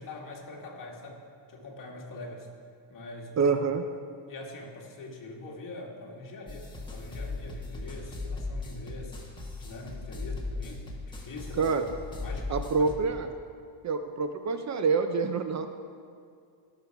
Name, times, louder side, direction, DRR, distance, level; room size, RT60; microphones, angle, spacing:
voice 1, 0.0-2.5 2.9-3.6 4.3-9.2 9.6-11.8 12.2-12.9, left 2 dB, 45° left, -1 dB, 2.0 m, -43 dB
voice 2, 3.4-3.8 11.6-11.8 12.5-13.3 13.8-15.7, right 4 dB, 40° right, 8 dB, 0.6 m, -26 dB
sound 1, 6.5-13.0, left 3 dB, 10° left, 1.5 m, -37 dB
17.0 x 6.5 x 4.7 m, 2.3 s
cardioid pair, 135°, 44 cm